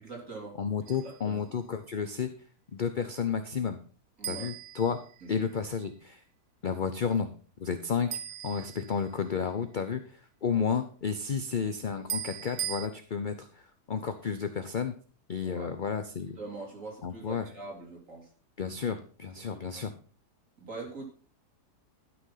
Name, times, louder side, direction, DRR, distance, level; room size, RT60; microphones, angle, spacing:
voice 1, 0.0-0.5 0.9-1.4 4.2-4.5 5.2-5.3 15.4-15.7 16.4-18.3 19.5-19.9 20.6-21.0, right 3 dB, 50° right, 0 dB, 3.5 m, -43 dB
voice 2, 0.6-2.3 2.7-3.8 4.3-5.0 5.3-6.2 6.6-7.3 7.6-15.0 15.3-16.4 17.0-17.5 18.6-19.9, left 6 dB, 45° left, 8 dB, 0.7 m, -32 dB
sound 1, 0.9-1.3 4.2-5.6 8.1-9.4 12.1-12.9, right 10 dB, 70° right, 1.3 m, -38 dB
12.0 x 6.1 x 5.6 m, 0.39 s
omnidirectional pair, 1.7 m